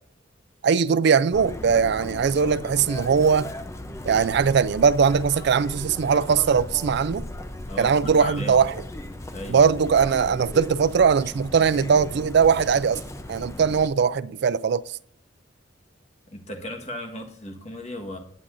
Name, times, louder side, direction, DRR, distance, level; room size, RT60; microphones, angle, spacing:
voice 1, 0.6-3.5 4.0-7.2 7.8-8.8 9.5-13.0 13.3-15.0, right 6 dB, 60° right, 0.4 m, -20 dB
Chirp tweet, 1.3-13.9, left 1 dB, 15° left, 0.6 m, -37 dB
voice 2, 7.7-8.6 9.3-9.6 16.3-18.2, left 1 dB, 35° left, 1.4 m, -36 dB
18.5 x 7.5 x 2.6 m
head